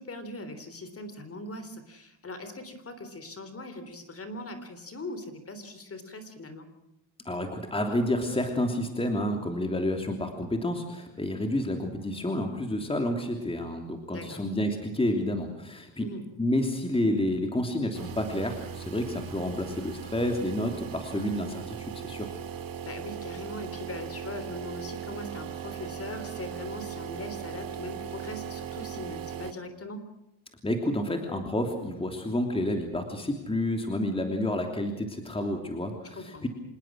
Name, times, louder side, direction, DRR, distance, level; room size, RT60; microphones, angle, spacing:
voice 1, 0.0-6.7 14.1-14.4 16.0-16.3 22.8-30.0 36.1-36.5, left 2 dB, 30° left, 10 dB, 3.6 m, -40 dB
voice 2, 7.2-16.1 16.4-22.3 30.6-36.5, left 1 dB, 10° left, 4 dB, 3.1 m, -29 dB
sound 1, 17.9-29.5, right 9 dB, 45° right, 2.2 m, -39 dB
27.0 x 19.5 x 6.3 m, 0.86 s
cardioid pair, 120°, 48 cm